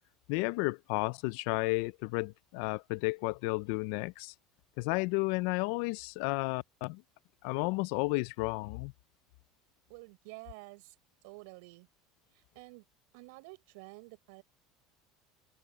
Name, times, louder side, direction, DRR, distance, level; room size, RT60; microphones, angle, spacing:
voice 1, 0.3-4.3 4.8-7.0 7.4-8.9, left 25 dB, 70° left, 0.4 m, -32 dB
voice 2, 9.9-10.9 11.2-11.9 12.3-12.9 13.1-14.4, right 28 dB, 75° right, 6.1 m, -50 dB
open air
supercardioid pair, 135°, 0 cm